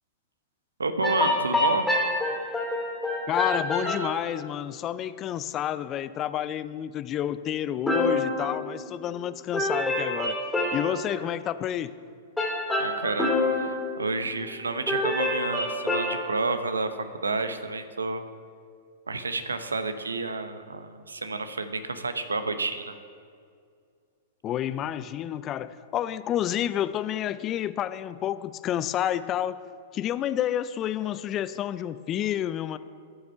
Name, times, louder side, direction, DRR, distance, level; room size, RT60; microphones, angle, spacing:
voice 1, 0.8-1.9 12.8-16.9 17.2-18.2 19.1-22.9, right 3 dB, 90° right, 9 dB, 0.8 m, -30 dB
sound 1, 1.0-4.2 7.9-9.2 9.5-11.2 12.4-14.6 14.9-16.5, left 2 dB, 5° left, 2.4 m, -27 dB
voice 2, 3.3-10.4 10.7-11.9 24.4-29.6 29.9-32.8, left 11 dB, 30° left, 15 dB, 0.4 m, -29 dB
13.0 x 6.5 x 5.5 m, 2.3 s
hypercardioid pair, 110°, 0 cm